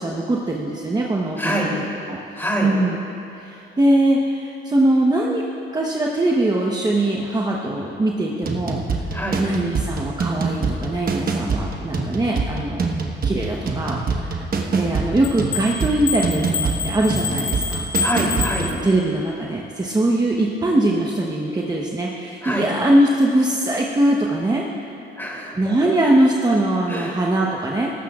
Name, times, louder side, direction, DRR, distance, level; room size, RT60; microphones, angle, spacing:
voice 1, 0.0-1.8 2.1-2.2 2.6-3.0 3.4-5.4 5.7-8.8 9.4-12.9 13.2-14.5 14.7-17.9 18.6-24.6 25.6-27.9, right 1 dB, 20° right, -2 dB, 1.0 m, -21 dB
voice 2, 1.4-1.7 2.3-2.7 9.1-9.4 18.0-18.7 22.4-22.7 25.2-25.7 26.9-27.2, equal, 10° left, -3 dB, 3.2 m, -25 dB
sound 1, 8.4-18.8, right 4 dB, 45° right, 1.3 m, -25 dB
sound 2, 15.2-19.2, left 4 dB, 70° left, 1.6 m, -27 dB
18.5 x 14.5 x 2.5 m, 2.9 s
cardioid pair, 90°, 20 cm